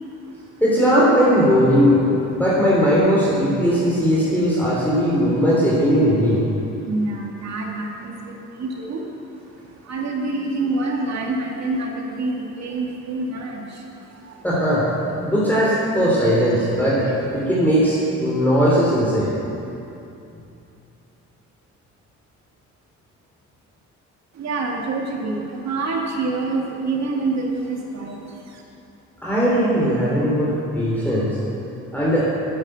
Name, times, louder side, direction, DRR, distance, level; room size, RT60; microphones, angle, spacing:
voice 1, 0.6-2.0 2.3-6.4 14.4-14.9 15.3-17.1 17.3-19.3 29.2-31.4 31.9-32.3, equal, 5° left, -8 dB, 3.5 m, -18 dB
voice 2, 6.8-8.1 8.6-9.0 9.9-13.6 24.4-25.4 25.6-28.2, right 3 dB, 65° right, 0 dB, 2.3 m, -26 dB
10.5 x 9.8 x 7.7 m, 2.7 s
cardioid pair, 90°, 30 cm